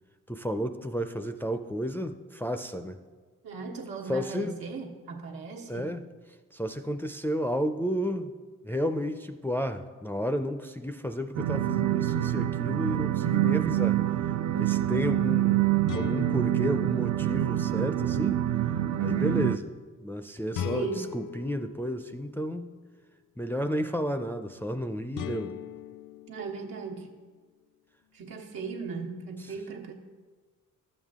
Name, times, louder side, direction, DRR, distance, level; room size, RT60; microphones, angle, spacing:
voice 1, 0.3-3.0 4.1-4.6 5.7-6.0 6.5-8.3 8.6-14.0 14.5-15.7 15.9-18.4 19.0-19.6 20.0-22.7 23.4-25.6, equal, 5° left, 6 dB, 0.4 m, -32 dB
voice 2, 3.4-5.9 19.0-19.5 20.7-21.1 26.3-27.1 28.1-29.9, right 4 dB, 85° right, -1 dB, 1.4 m, -37 dB
sound 1, 11.4-19.6, right 13 dB, 55° right, 0.4 m, -26 dB
sound 2, 12.0-12.9 15.9-18.0 20.5-22.7 25.2-27.3, left 8 dB, 60° left, 0.5 m, -41 dB
12.0 x 7.5 x 3.6 m, 1.4 s
cardioid pair, 70°, 35 cm